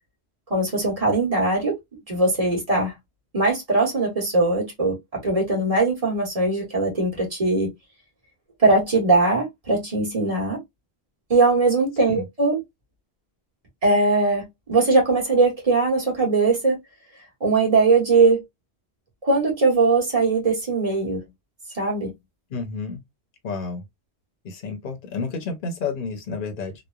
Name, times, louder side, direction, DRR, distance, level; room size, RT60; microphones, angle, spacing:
voice 1, 0.5-1.8 2.1-2.9 3.3-7.7 8.6-10.6 11.3-12.6 13.8-16.8 17.4-18.4 19.2-21.2 21.7-22.1, right 3 dB, 35° right, 1.2 m, -20 dB
voice 2, 22.5-23.0 23.4-23.8 24.4-26.7, left 4 dB, 55° left, 0.8 m, -30 dB
3.0 x 2.0 x 2.3 m
omnidirectional pair, 1.1 m